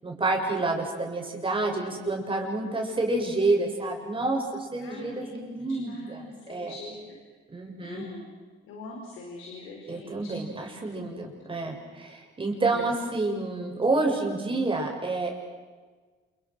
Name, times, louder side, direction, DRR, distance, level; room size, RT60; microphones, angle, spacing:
voice 1, 0.0-6.7 7.5-8.1 9.9-15.3, right 2 dB, 25° right, 1 dB, 7.5 m, -29 dB
voice 2, 4.8-7.2 7.8-8.3 8.6-10.5 10.9-11.2 12.7-12.9, left 2 dB, 85° left, 1 dB, 5.2 m, -43 dB
29.0 x 29.0 x 6.5 m, 1.4 s
cardioid pair, 90°, 20 cm